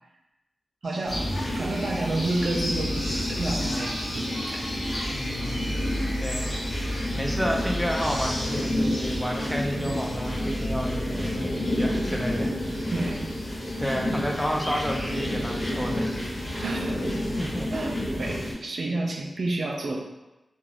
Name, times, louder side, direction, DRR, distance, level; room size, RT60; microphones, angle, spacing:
sound 1, 0.8-17.3, equal, 70° left, 1.2 m, -39 dB
voice 1, 0.8-4.7 9.8-10.0 11.0-11.2 12.9-13.3 14.1-14.2 14.6-14.7 16.6-17.1 17.7-20.0, right 2 dB, 65° right, 1 dB, 0.3 m, -30 dB
sound 2, 1.1-18.5, left 1 dB, 45° left, 1.1 m, -29 dB
voice 2, 5.1-5.7 6.2-12.9 13.5-16.2 17.4-17.7, equal, 5° left, -1 dB, 0.5 m, -31 dB
2.4 x 2.3 x 3.4 m, 1.0 s
cardioid pair, 55°, 0 cm